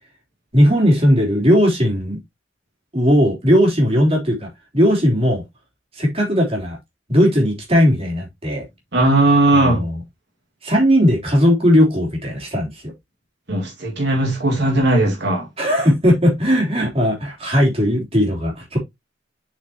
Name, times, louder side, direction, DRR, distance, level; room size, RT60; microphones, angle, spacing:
voice 1, 0.5-2.2 2.9-5.4 6.0-6.8 7.1-8.7 9.6-10.0 10.6-12.9 15.6-18.8, equal, 30° right, 3.5 m, -17 dB
voice 2, 8.9-9.8 13.5-15.5, right 2 dB, 60° right, 2.1 m, -17 dB
7.4 x 5.9 x 2.9 m
head